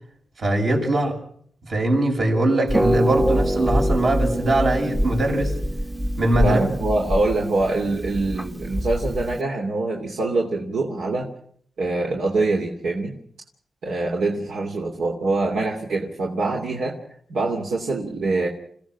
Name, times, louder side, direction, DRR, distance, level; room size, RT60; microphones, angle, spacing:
voice 1, 0.4-1.1 1.7-5.5 6.2-6.6, right 1 dB, 60° right, 1 dB, 6.6 m, -21 dB
Harp, 2.7-9.4, equal, 15° right, 0.9 m, -24 dB
voice 2, 6.4-11.3 11.8-13.2 13.8-17.0 17.3-18.5, right 2 dB, 80° right, 0 dB, 2.9 m, -24 dB
28.5 x 17.0 x 6.2 m, 0.63 s
cardioid pair, 80°, 0 cm